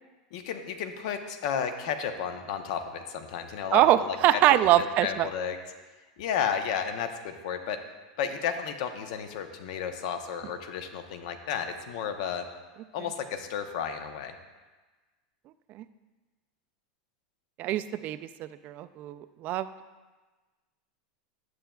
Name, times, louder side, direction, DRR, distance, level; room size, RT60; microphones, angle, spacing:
voice 1, 0.3-5.6 6.2-7.8 8.2-12.5 12.9-14.4, left 7 dB, 65° left, 7 dB, 0.8 m, -33 dB
voice 2, 3.7-5.3 15.7-15.8 17.6-19.7, right 13 dB, 45° right, 12 dB, 0.4 m, -24 dB
11.0 x 7.6 x 2.3 m, 1.3 s
hypercardioid pair, 115°, 4 cm